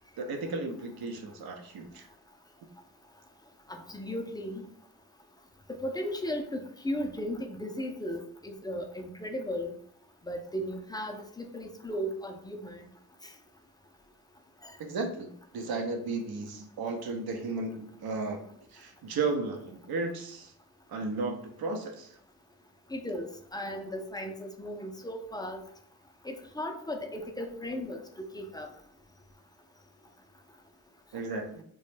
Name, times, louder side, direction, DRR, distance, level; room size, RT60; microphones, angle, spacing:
voice 1, 0.2-2.1 14.8-18.4 18.7-20.5 20.9-22.2 31.1-31.6, right 3 dB, 65° right, 4 dB, 0.7 m, -34 dB
voice 2, 3.7-4.7 5.7-9.7 10.2-12.9 14.6-14.7 22.9-25.6 26.2-28.7, equal, 10° left, 4 dB, 0.5 m, -36 dB
2.3 x 2.0 x 3.1 m, 0.64 s
supercardioid pair, 45°, 39 cm